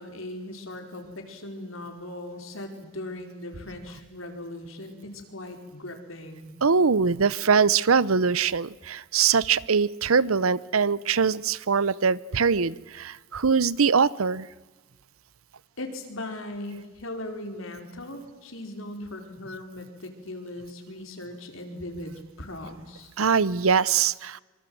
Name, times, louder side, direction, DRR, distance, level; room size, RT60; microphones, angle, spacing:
voice 1, 0.0-6.5 15.8-23.1, left 1 dB, 75° left, 5 dB, 4.6 m, -39 dB
voice 2, 6.6-14.5 23.2-24.4, right 5 dB, 85° right, 21 dB, 0.8 m, -22 dB
25.5 x 24.5 x 7.9 m, 1.2 s
head